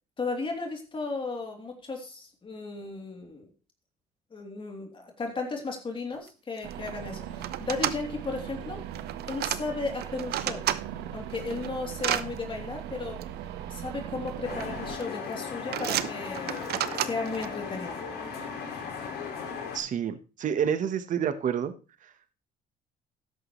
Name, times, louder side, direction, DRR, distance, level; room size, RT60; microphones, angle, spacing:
voice 1, 0.2-3.5 4.3-8.8 9.3-10.7 11.1-13.2 13.7-18.0, left 3 dB, 30° left, 2 dB, 3.0 m, -35 dB
sound 1, 6.3-6.4 6.6-6.9 7.4-8.0 8.9-9.6 10.0-10.8 11.3-12.2 13.2-13.3 14.3-14.7 15.0-15.3 15.7-17.5, right 12 dB, 70° right, 0.8 m, -31 dB
sound 2, 6.6-15.0, right 10 dB, 85° right, 1.3 m, -39 dB
sound 3, 14.4-19.8, left 6 dB, 75° left, 5.1 m, -37 dB
voice 2, 19.7-21.7 22.0-22.1, right 8 dB, 50° right, 11 dB, 1.2 m, -28 dB
13.5 x 10.5 x 3.2 m, 0.32 s
cardioid pair, 110°, 17 cm